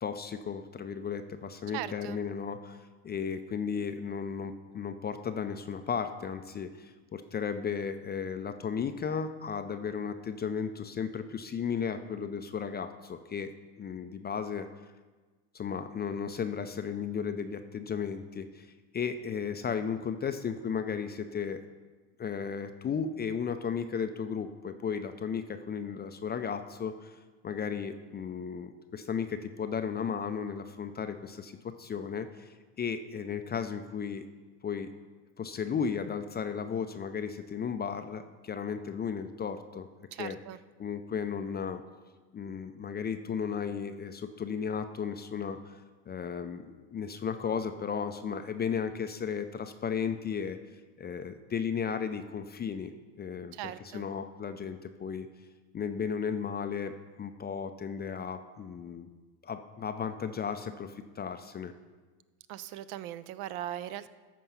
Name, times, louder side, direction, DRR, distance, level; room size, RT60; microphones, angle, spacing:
voice 1, 0.0-13.5 13.8-14.7 15.5-21.6 22.2-27.2 27.4-32.5 32.8-34.2 34.6-34.9 35.4-39.9 40.2-40.4 40.8-41.8 42.3-45.8 46.1-50.6 51.0-55.3 55.7-56.9 57.2-59.1 59.4-61.7, left 6 dB, 20° left, 8 dB, 0.4 m, -35 dB
voice 2, 1.7-2.2 40.1-40.6 53.5-54.0 62.5-64.1, right 12 dB, 60° right, 14 dB, 0.6 m, -39 dB
13.5 x 4.6 x 5.5 m, 1.3 s
hypercardioid pair, 80°, 48 cm